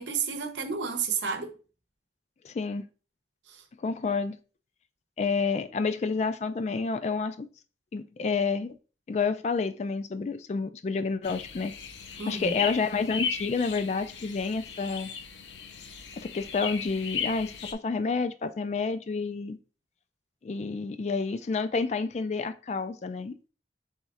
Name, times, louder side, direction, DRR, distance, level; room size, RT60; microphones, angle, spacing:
voice 1, 0.0-1.5 3.5-3.6 12.2-12.6, right 6 dB, 90° right, 0.8 m, -31 dB
voice 2, 2.4-2.8 3.8-4.4 5.2-7.5 7.9-8.8 9.1-11.7 12.3-15.1 16.2-19.6 20.4-23.5, left 4 dB, 40° left, 0.3 m, -29 dB
sound 1, 11.2-17.7, left 6 dB, 85° left, 0.6 m, -37 dB
3.6 x 3.1 x 4.1 m
head